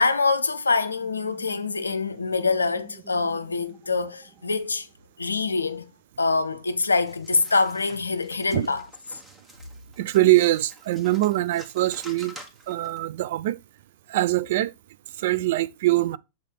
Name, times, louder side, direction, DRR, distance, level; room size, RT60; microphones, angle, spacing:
voice 1, 0.0-4.9 5.2-5.8 6.2-8.9, left 4 dB, 80° left, 0.5 m, -25 dB
sound 1, 1.0-5.2, right 2 dB, 35° right, 1.2 m, -51 dB
sound 2, 7.1-13.0, equal, 15° right, 1.4 m, -48 dB
voice 2, 10.0-12.4 12.7-13.6 14.1-14.7 15.2-16.2, right 16 dB, 55° right, 0.3 m, -23 dB
7.1 x 3.2 x 4.3 m
figure-of-eight pair, 95°, 0 cm